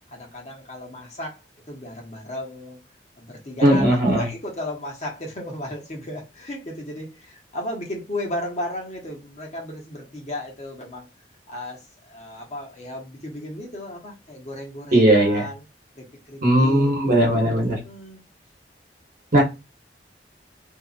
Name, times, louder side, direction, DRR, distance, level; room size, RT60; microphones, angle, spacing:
voice 1, 0.1-1.4 1.7-2.8 3.2-11.1 11.5-15.6 15.9-16.9 17.4-17.6 17.8-18.2, left 1 dB, 40° left, 1.0 m, -35 dB
voice 2, 3.6-4.3 14.9-15.5 16.4-17.8 19.3-19.4, right 1 dB, 50° right, 1.0 m, -17 dB
2.7 x 2.5 x 2.4 m
head